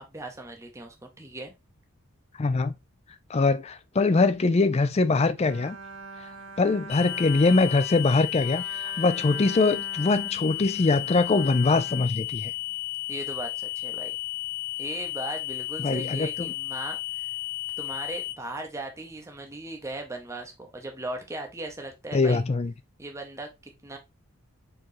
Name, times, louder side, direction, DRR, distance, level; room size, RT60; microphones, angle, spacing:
voice 1, 0.1-1.5 13.1-14.2 14.8-17.3 17.8-22.4 23.0-24.0, right 2 dB, 15° right, 0.7 m, -38 dB
voice 2, 2.4-2.7 3.3-5.8 6.2-6.3 6.6-12.5 15.8-16.5 22.1-22.7, left 3 dB, 30° left, 0.4 m, -23 dB
Bowed string instrument, 5.4-12.8, right 2 dB, 85° right, 1.0 m, -44 dB
sound 1, 6.9-18.3, left 19 dB, 70° left, 1.0 m, -33 dB
4.7 x 3.7 x 3.0 m
head